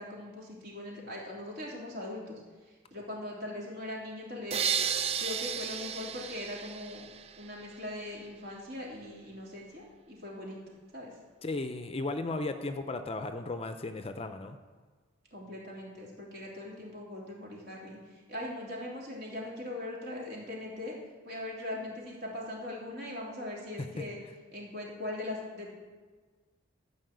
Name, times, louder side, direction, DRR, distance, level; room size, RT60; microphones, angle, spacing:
voice 1, 0.0-2.4 2.7-4.6 5.2-7.1 7.4-10.6 10.9-11.1 15.3-20.9 21.2-24.2 24.5-25.7, left 1 dB, 55° right, -3 dB, 3.1 m, -40 dB
sound 1, 4.5-7.5, right 7 dB, 30° right, 0.3 m, -33 dB
voice 2, 11.4-14.6 23.8-23.9, left 2 dB, 30° left, 8 dB, 0.5 m, -35 dB
13.0 x 5.5 x 8.0 m, 1.4 s
head